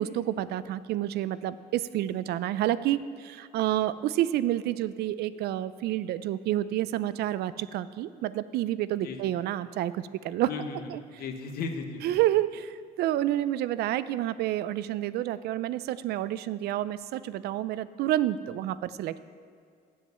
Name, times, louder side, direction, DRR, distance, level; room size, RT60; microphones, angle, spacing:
voice 1, 0.0-10.5 10.9-11.0 12.0-19.2, right 13 dB, 70° right, 16 dB, 0.4 m, -29 dB
voice 2, 8.9-9.3 10.4-12.2, left 4 dB, 65° left, 5 dB, 1.2 m, -37 dB
7.5 x 7.2 x 8.0 m, 2.2 s
cardioid pair, 110°, 17 cm